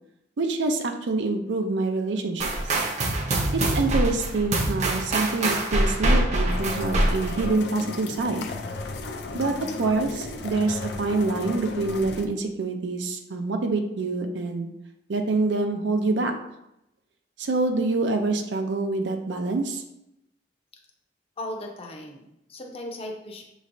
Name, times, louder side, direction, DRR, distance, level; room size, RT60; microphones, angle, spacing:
voice 1, 0.4-2.5 3.5-8.5 9.3-14.7 15.1-16.3 17.4-19.8, right 3 dB, 80° right, 4 dB, 0.5 m, -26 dB
sound 1, 2.4-7.5, right 1 dB, 40° right, 0.7 m, -24 dB
sound 2, 6.5-12.3, left 3 dB, 65° left, 0.5 m, -35 dB
voice 2, 21.4-23.4, left 1 dB, 35° left, 2 dB, 0.7 m, -37 dB
6.3 x 3.1 x 2.6 m, 0.84 s
head